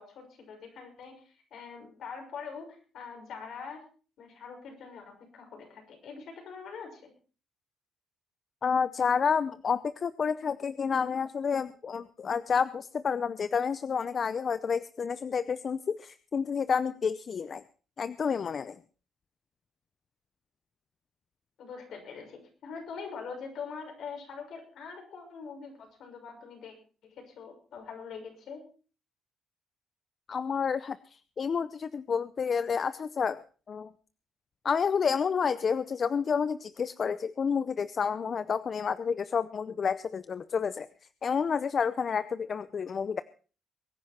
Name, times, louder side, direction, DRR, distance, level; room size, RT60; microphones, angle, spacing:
voice 1, 0.0-3.9 4.2-7.1 21.6-26.7 27.0-28.6, left 5 dB, 70° left, 3 dB, 6.2 m, -43 dB
voice 2, 8.6-17.6 18.0-18.8 30.3-31.0 31.4-33.9 34.6-40.9 41.2-43.2, left 6 dB, 45° left, 14 dB, 0.6 m, -29 dB
23.0 x 10.0 x 4.3 m, 0.39 s
cardioid pair, 90°, 0 cm